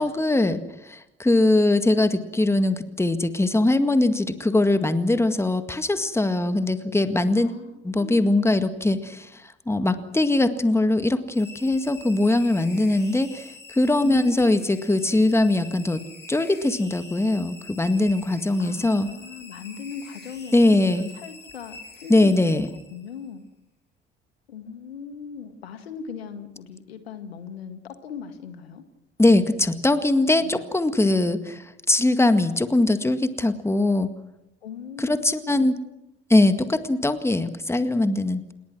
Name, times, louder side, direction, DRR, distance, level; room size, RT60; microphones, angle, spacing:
voice 1, 0.0-7.5 7.8-9.3 9.7-19.1 20.5-21.1 22.1-22.7 29.2-31.4 31.9-34.1 35.0-35.8 36.3-38.5, left 2 dB, 10° left, 10 dB, 1.9 m, -21 dB
voice 2, 7.4-8.3 14.0-14.7 18.6-23.4 24.5-28.8 30.4-30.7 31.0-31.1 34.6-35.7, left 6 dB, 75° left, 10 dB, 1.9 m, -39 dB
sound 1, 11.3-23.2, left 3 dB, 35° left, 7.1 m, -45 dB
28.5 x 20.5 x 6.3 m, 0.88 s
figure-of-eight pair, 50°, 31 cm